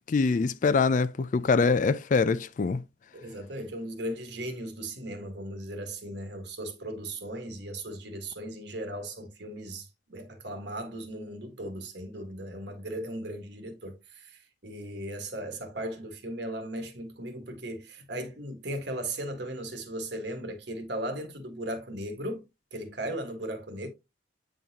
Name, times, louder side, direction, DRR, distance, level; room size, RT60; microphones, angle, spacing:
voice 1, 0.1-2.8, left 4 dB, 40° left, 0.3 m, -24 dB
voice 2, 3.1-22.4 22.7-23.9, right 1 dB, 65° right, 1.5 m, -37 dB
8.6 x 3.9 x 2.8 m
head